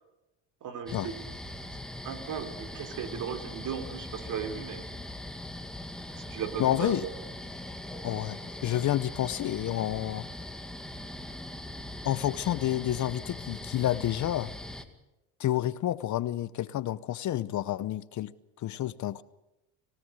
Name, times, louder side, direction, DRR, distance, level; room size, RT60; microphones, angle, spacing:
voice 1, 0.6-1.2 2.0-4.9 6.2-7.2, right 7 dB, 50° right, 3.7 m, -36 dB
sound 1, 0.9-14.8, left 1 dB, ahead, 2.2 m, -41 dB
voice 2, 6.6-7.1 8.0-10.3 12.0-14.5 15.4-18.3 18.6-19.2, left 13 dB, 50° left, 0.9 m, -29 dB
26.0 x 18.0 x 6.5 m
supercardioid pair, 95°, 39 cm